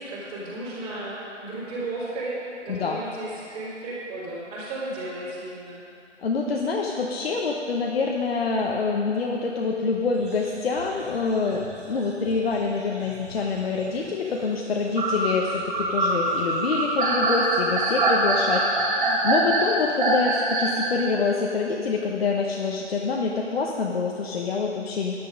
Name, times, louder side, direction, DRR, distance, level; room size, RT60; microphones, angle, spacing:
voice 1, 0.0-5.8 18.5-18.9, right 2 dB, 15° right, -11 dB, 2.9 m, -34 dB
voice 2, 6.2-25.2, left 4 dB, 55° left, -1 dB, 1.0 m, -26 dB
sound 1, 10.2-12.4 13.0-14.1 14.8-21.0, right 2 dB, 45° right, 2.8 m, -24 dB
10.5 x 9.5 x 5.2 m, 2.6 s
figure-of-eight pair, 145°, 36 cm